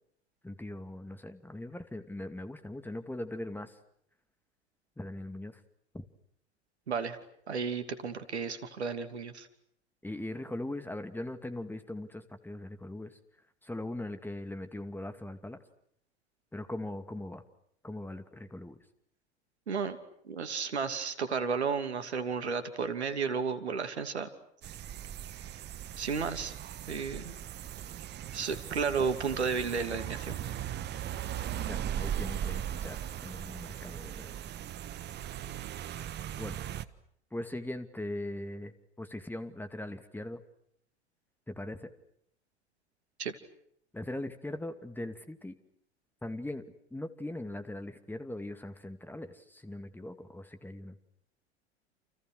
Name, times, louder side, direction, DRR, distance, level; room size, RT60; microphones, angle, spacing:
voice 1, 0.4-3.7 5.0-5.6 5.9-6.0 10.0-13.2 13.6-15.6 16.5-17.4 17.8-18.8 31.6-34.3 36.1-36.6 37.3-40.4 41.5-41.9 43.9-45.6 46.2-46.6 46.9-51.0, left 1 dB, 5° left, 9 dB, 2.4 m, -40 dB
voice 2, 6.9-7.2 7.5-9.5 19.7-20.0 20.2-24.3 25.4-25.5 26.0-26.5 26.9-27.4 28.3-30.4 43.2-43.3, right 5 dB, 75° right, 10 dB, 2.8 m, -33 dB
sound 1, 24.6-36.8, right 10 dB, 30° right, 1.4 m, -38 dB
29.5 x 29.5 x 6.4 m, 0.70 s
figure-of-eight pair, 80°, 34 cm